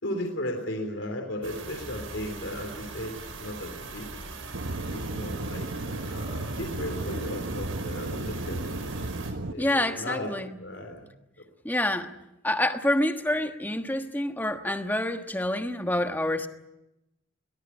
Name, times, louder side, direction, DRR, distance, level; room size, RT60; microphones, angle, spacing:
voice 1, 0.0-4.1 4.9-8.9 9.5-10.3 10.6-11.1, left 1 dB, 70° left, 3.6 m, -36 dB
sound 1, 1.4-9.3, right 3 dB, 90° right, 5.6 m, -41 dB
Aircraft / Engine, 4.5-9.5, right 2 dB, 75° right, 1.1 m, -34 dB
voice 2, 9.6-10.6 11.6-12.1 12.4-16.5, left 1 dB, 10° left, 1.4 m, -27 dB
23.0 x 18.5 x 9.9 m
head